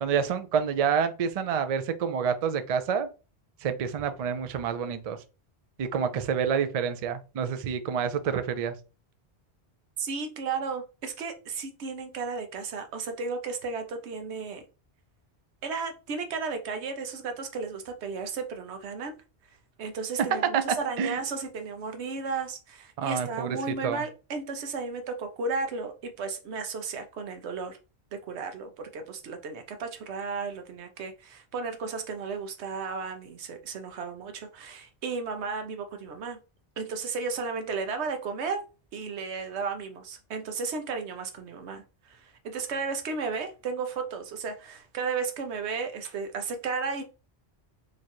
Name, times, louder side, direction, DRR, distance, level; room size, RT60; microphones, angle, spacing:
voice 1, 0.0-3.1 3.6-5.2 5.8-8.7 20.5-20.6 21.0-21.2 23.0-23.6 23.8-24.0, right 7 dB, 55° right, 0.4 m, -28 dB
voice 2, 10.0-14.6 15.6-19.1 19.8-27.8 28.1-36.4 36.8-38.6 38.9-47.0, right 4 dB, 85° right, 1.0 m, -34 dB
3.1 x 2.5 x 4.3 m
omnidirectional pair, 1.1 m